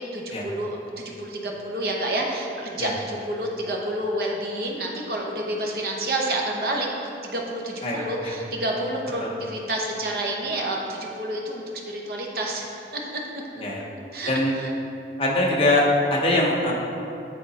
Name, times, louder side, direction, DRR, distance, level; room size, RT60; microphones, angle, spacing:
voice 1, 0.0-6.9 7.2-12.6 12.9-13.0 14.1-14.3 14.6-14.7, right 1 dB, 55° right, -1 dB, 0.9 m, -29 dB
voice 2, 7.8-8.4 9.2-9.3 13.6-13.9 14.3-14.5 15.2-16.7, left 1 dB, 30° left, -3 dB, 0.8 m, -22 dB
8.6 x 3.9 x 4.1 m, 2.7 s
head